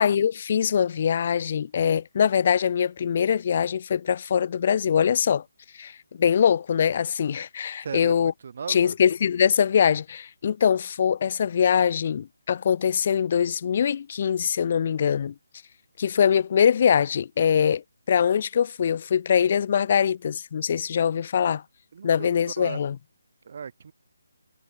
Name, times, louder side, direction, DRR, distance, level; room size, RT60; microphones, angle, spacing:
voice 1, 0.0-5.4 5.7-8.3 8.7-15.3 16.0-17.8 18.1-21.6 22.0-22.9, left 8 dB, 40° left, 0.3 m, -23 dB
voice 2, 7.8-8.9 21.9-22.8 23.4-23.9, right 6 dB, 50° right, 0.8 m, -37 dB
figure-of-eight pair, 155°, 0 cm